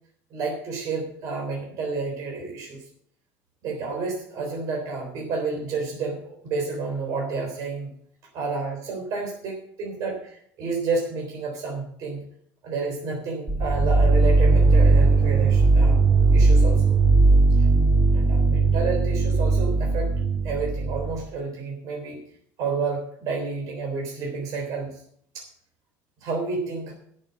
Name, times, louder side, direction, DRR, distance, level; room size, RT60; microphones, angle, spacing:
voice 1, 0.3-2.8 3.6-7.9 8.3-12.2 12.6-16.0 16.3-16.9 18.1-20.1 20.4-22.2 22.6-25.0 25.3-25.5 26.2-26.9, right 4 dB, 55° right, 0 dB, 3.5 m, -30 dB
sound 1, 13.5-21.2, right 3 dB, 10° right, 1.8 m, -18 dB
11.0 x 6.7 x 7.9 m, 0.66 s
cardioid pair, 135°, 7 cm